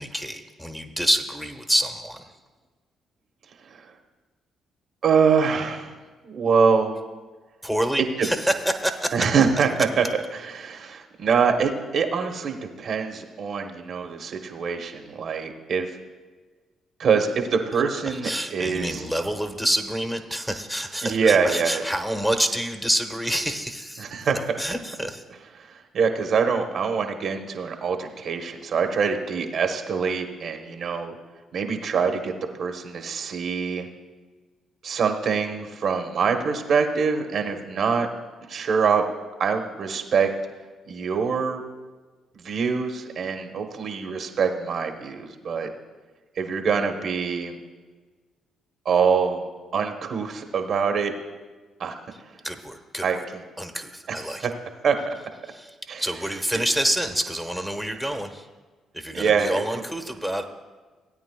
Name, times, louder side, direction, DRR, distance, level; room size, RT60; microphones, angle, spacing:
voice 1, 0.0-2.3 7.6-9.3 18.1-24.0 24.6-25.2 52.4-53.2 53.6-54.5 55.4-58.5 58.9-60.4, equal, ahead, 4 dB, 1.1 m, -27 dB
voice 2, 3.6-3.9 5.0-6.0 6.2-7.0 8.2-8.3 9.1-10.0 10.3-15.9 17.0-19.0 21.0-21.8 24.0-24.4 25.6-31.1 31.5-33.9 34.8-38.1 38.5-39.0 39.4-40.3 40.9-41.6 42.3-45.7 46.4-47.6 48.8-51.1 51.8-51.9 52.2-52.4 53.0-53.4 54.1-54.2 54.4-54.5 54.8-55.1 55.9-56.0 59.1-59.6, right 6 dB, 60° right, 5 dB, 1.0 m, -24 dB
17.0 x 8.9 x 2.3 m, 1.3 s
hypercardioid pair, 55°, 0 cm